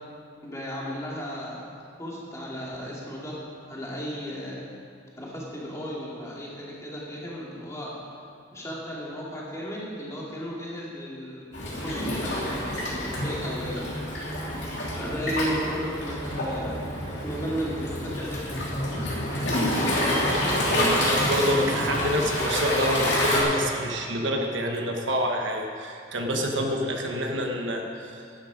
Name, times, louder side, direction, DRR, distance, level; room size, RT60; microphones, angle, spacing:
voice 1, 0.4-1.6 2.0-3.4 3.7-4.7 5.2-7.9 8.5-11.5 11.8-14.4 14.9-16.8 17.2-19.0, equal, 15° left, -5 dB, 2.4 m, -34 dB
Waves surf, 11.5-23.4, left 1 dB, 60° left, 3.0 m, -27 dB
voice 2, 20.4-28.2, equal, 70° right, 2 dB, 1.2 m, -27 dB
12.0 x 11.5 x 5.2 m, 2.4 s
head